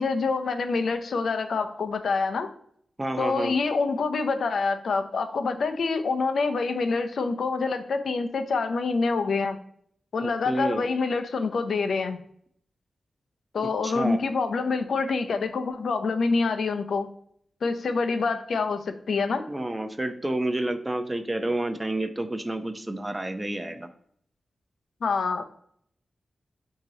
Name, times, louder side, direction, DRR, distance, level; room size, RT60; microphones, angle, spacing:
voice 1, 0.0-2.5 3.2-9.6 10.1-12.2 13.5-17.1 17.6-19.4 25.0-25.4, left 4 dB, 80° left, 8 dB, 0.5 m, -26 dB
voice 2, 3.0-3.5 10.2-10.8 13.8-14.2 19.5-23.9, right 1 dB, 20° right, 8 dB, 0.5 m, -29 dB
6.0 x 2.8 x 2.7 m, 0.65 s
cardioid pair, 75°, 0 cm